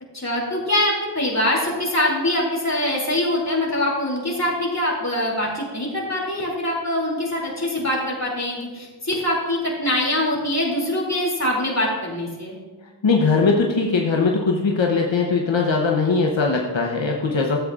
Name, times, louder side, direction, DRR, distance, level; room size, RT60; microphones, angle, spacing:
voice 1, 0.1-12.6, left 1 dB, 35° left, -2 dB, 2.7 m, -23 dB
voice 2, 13.0-17.6, left 4 dB, 80° left, 0 dB, 0.9 m, -20 dB
13.5 x 8.0 x 2.4 m, 1.2 s
wide cardioid pair, 45°, 45 cm